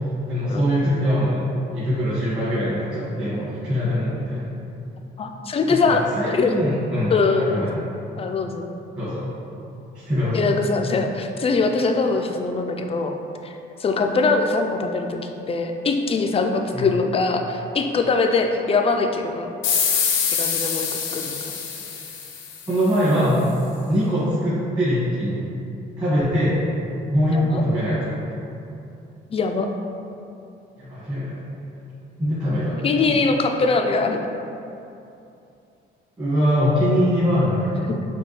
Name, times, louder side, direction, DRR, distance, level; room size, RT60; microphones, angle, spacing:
voice 1, 0.3-1.5 1.7-4.5 5.7-7.8 8.9-9.4 9.9-10.5 16.7-16.9 22.7-23.5 23.9-25.4 26.0-26.6 27.1-28.2 30.8-31.4 32.2-32.8 33.0-33.1 36.2-37.7, equal, 25° right, -12 dB, 1.4 m, -22 dB
voice 2, 5.2-6.6 7.1-7.7 8.2-8.8 10.3-13.1 13.4-13.5 13.8-15.2 15.5-19.5 20.3-20.9 21.1-21.6 27.5-27.6 29.3-29.7 32.8-34.2 37.9-38.0, left 4 dB, 30° left, 4 dB, 0.4 m, -22 dB
sound 1, 19.6-23.0, left 6 dB, 80° left, 0.6 m, -25 dB
5.7 x 2.2 x 3.1 m, 2.7 s
cardioid pair, 90°, 20 cm